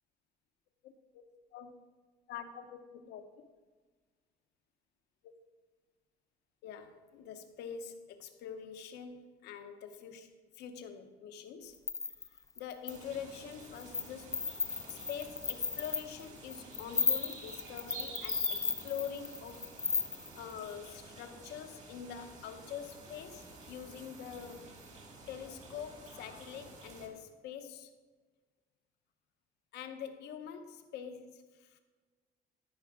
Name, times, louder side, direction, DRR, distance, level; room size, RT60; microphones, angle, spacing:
voice 1, 0.8-1.2 1.5-1.7 2.3-3.2 6.6-11.8 12.3-14.4 14.9-19.7 20.0-24.7 25.3-27.9 29.7-31.8, left 8 dB, 80° left, 7 dB, 0.9 m, -45 dB
sound 1, 11.7-13.0 13.5-14.1 14.3-20.5, left 4 dB, 20° left, 0.5 m, -34 dB
sound 2, 12.9-27.1, right 3 dB, 45° right, 2.1 m, -50 dB
13.0 x 4.8 x 4.9 m, 1.4 s
cardioid pair, 110°, 17 cm